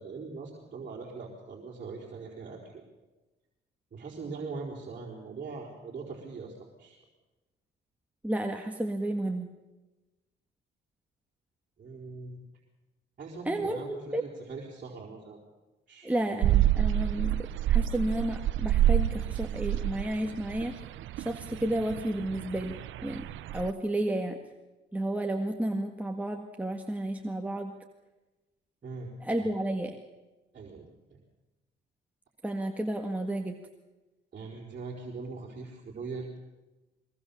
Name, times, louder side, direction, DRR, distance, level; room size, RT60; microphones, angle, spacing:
voice 1, 0.0-2.8 3.9-7.0 11.8-12.4 13.2-15.4 15.9-16.2 28.8-29.1 29.4-29.5 30.5-30.9 34.3-36.3, right 4 dB, 45° right, -4 dB, 4.5 m, -41 dB
voice 2, 8.2-9.5 13.5-14.2 16.0-20.8 21.2-23.3 23.5-24.4 24.9-27.7 29.2-30.0 32.4-33.6, right 1 dB, 5° right, 3 dB, 1.8 m, -32 dB
sound 1, 16.4-23.7, right 12 dB, 80° right, 0.7 m, -28 dB
23.0 x 19.0 x 7.2 m, 1.1 s
cardioid pair, 90°, 20 cm